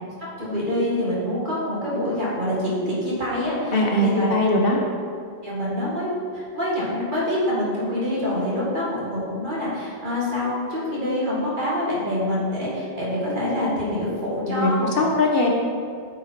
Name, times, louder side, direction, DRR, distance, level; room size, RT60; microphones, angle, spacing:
voice 1, 0.4-4.3 5.4-15.1, left 1 dB, 50° right, -7 dB, 2.1 m, -26 dB
voice 2, 3.7-4.8 14.5-15.5, left 1 dB, 65° left, 0 dB, 1.2 m, -20 dB
8.7 x 4.7 x 4.1 m, 2.2 s
omnidirectional pair, 1.1 m